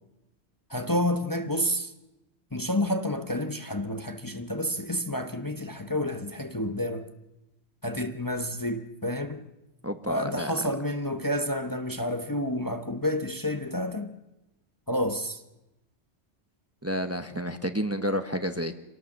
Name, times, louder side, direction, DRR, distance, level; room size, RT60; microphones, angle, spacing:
voice 1, 0.7-1.9 2.5-7.1 7.8-9.5 10.0-14.1 14.9-15.4, left 1 dB, 20° left, 1.1 m, -29 dB
voice 2, 9.8-10.6 16.8-18.7, equal, 15° right, 1.1 m, -30 dB
26.5 x 18.5 x 7.4 m
omnidirectional pair, 1.2 m